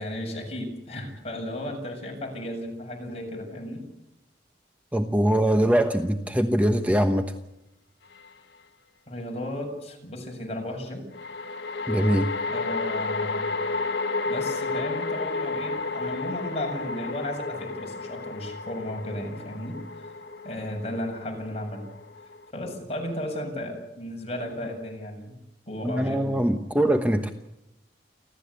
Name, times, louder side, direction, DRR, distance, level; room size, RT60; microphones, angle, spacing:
voice 1, 0.0-3.8 9.1-11.0 12.5-13.5 14.2-20.2 20.4-21.8 22.5-25.4 25.7-26.4, left 1 dB, 35° left, 1 dB, 7.4 m, -34 dB
voice 2, 4.9-7.3 11.9-12.3 25.8-27.3, right 1 dB, 10° right, 6 dB, 1.1 m, -22 dB
sound 1, 8.2-8.3 11.1-22.5, left 3 dB, 90° left, 1.3 m, -32 dB
29.5 x 13.0 x 8.5 m, 0.88 s
head